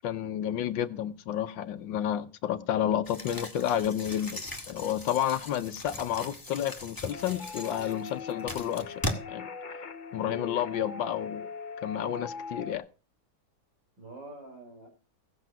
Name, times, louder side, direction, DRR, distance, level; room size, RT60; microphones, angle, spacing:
voice 1, 0.0-4.4 4.7-9.0 9.3-9.5 10.1-11.5 11.8-12.8, left 10 dB, 70° left, 1.4 m, -30 dB
sound 1, 3.1-9.1, left 1 dB, 10° left, 1.7 m, -39 dB
sound 2, 7.1-12.8, left 4 dB, 55° left, 0.5 m, -41 dB
voice 2, 10.1-10.7 14.0-14.9, right 2 dB, 60° right, 5.0 m, -46 dB
16.0 x 8.0 x 5.9 m
omnidirectional pair, 2.2 m